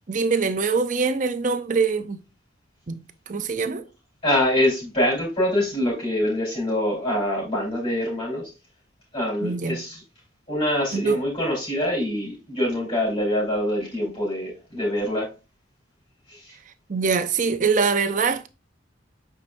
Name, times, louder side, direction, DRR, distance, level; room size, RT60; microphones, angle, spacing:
voice 1, 0.1-2.2 2.9-3.8 9.4-9.8 10.9-11.2 16.9-18.5, right 5 dB, 40° right, 0.6 m, -24 dB
voice 2, 4.2-8.5 9.1-10.0 10.5-15.3 16.3-16.5, left 1 dB, 30° left, 4.0 m, -25 dB
8.2 x 4.6 x 2.6 m
head